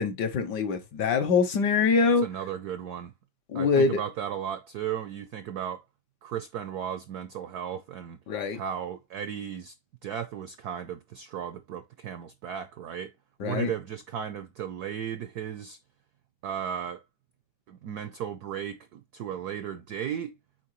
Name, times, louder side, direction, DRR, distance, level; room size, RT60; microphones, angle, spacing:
voice 1, 0.0-2.2 3.5-4.0 8.3-8.6 13.4-13.7, left 5 dB, 65° left, 1.2 m, -24 dB
voice 2, 2.2-3.1 3.5-5.8 6.2-8.2 8.5-9.7 10.0-13.1 13.4-15.8 16.4-17.0 17.7-20.3, right 9 dB, 75° right, 0.8 m, -35 dB
7.6 x 4.6 x 3.0 m
omnidirectional pair, 2.4 m